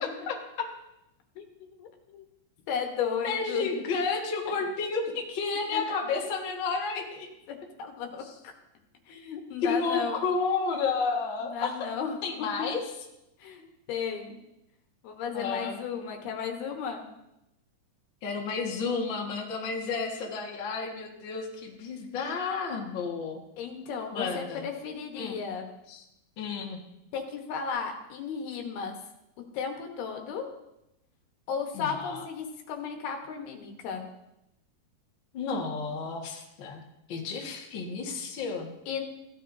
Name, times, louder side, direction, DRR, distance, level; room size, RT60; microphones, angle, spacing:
voice 1, 0.3-0.7 3.0-7.3 9.6-11.9 12.2-12.9 15.3-15.8 18.2-23.4 24.1-24.6 25.2-25.4 25.9-26.0 26.4-26.8 31.7-32.3 35.3-36.8 37.1-38.7, left 4 dB, 50° left, -1 dB, 1.5 m, -31 dB
voice 2, 1.4-2.2 2.7-3.8 5.7-6.0 7.5-8.5 9.1-10.2 11.4-12.2 13.4-13.6 13.9-14.4 15.0-17.0 23.6-25.7 27.1-29.0 29.5-30.4 31.5-34.0 38.9-39.0, left 6 dB, 75° left, 3 dB, 3.1 m, -34 dB
16.0 x 11.0 x 2.7 m, 0.87 s
omnidirectional pair, 4.6 m